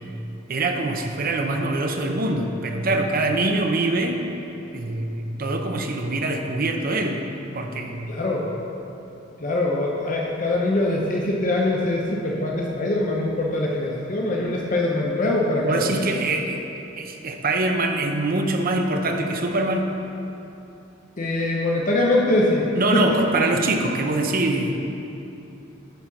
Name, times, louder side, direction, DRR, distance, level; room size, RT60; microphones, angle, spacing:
voice 1, 0.5-4.2 4.7-7.2 7.5-8.1 15.6-16.6 17.0-19.9 22.7-24.8, right 2 dB, 45° right, 3 dB, 0.7 m, -24 dB
voice 2, 8.1-8.5 9.4-15.9 21.2-23.2, left 2 dB, 40° left, -2 dB, 0.7 m, -23 dB
9.3 x 4.3 x 5.8 m, 2.9 s
head